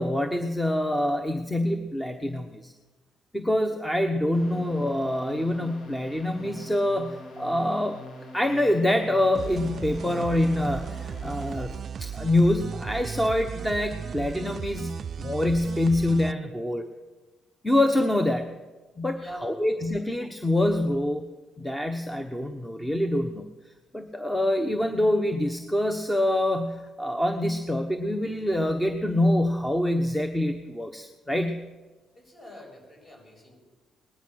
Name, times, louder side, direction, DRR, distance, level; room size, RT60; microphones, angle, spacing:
voice 1, 0.0-2.7 3.3-8.0 8.3-11.7 12.0-16.9 17.6-18.5 19.0-21.3 21.6-23.5 23.9-31.6, left 1 dB, 10° left, 6 dB, 1.1 m, -25 dB
sound 1, 4.3-11.9, left 1 dB, 65° left, 2.4 m, -44 dB
sound 2, 9.3-16.3, right 7 dB, 50° right, 0.4 m, -36 dB
voice 2, 19.1-19.7 32.2-33.6, equal, 30° left, 0 dB, 7.0 m, -45 dB
19.0 x 11.5 x 6.4 m, 1.2 s
cardioid pair, 90°, 0 cm